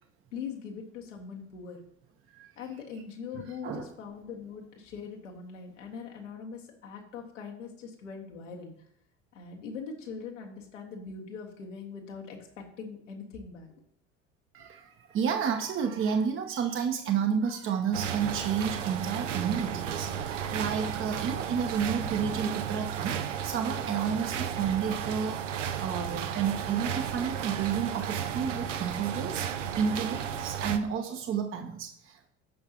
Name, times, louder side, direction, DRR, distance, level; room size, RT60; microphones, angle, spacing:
voice 1, 0.3-1.8 2.6-8.7 9.3-13.7, left 5 dB, 75° left, 0 dB, 1.8 m, -42 dB
voice 2, 3.3-3.9 14.5-25.4 25.8-32.3, right 7 dB, 35° right, 4 dB, 0.9 m, -31 dB
sound 1, 17.9-30.8, right 8 dB, 75° right, 0.8 m, -34 dB
16.0 x 5.8 x 2.9 m, 0.67 s
figure-of-eight pair, 65°, 37 cm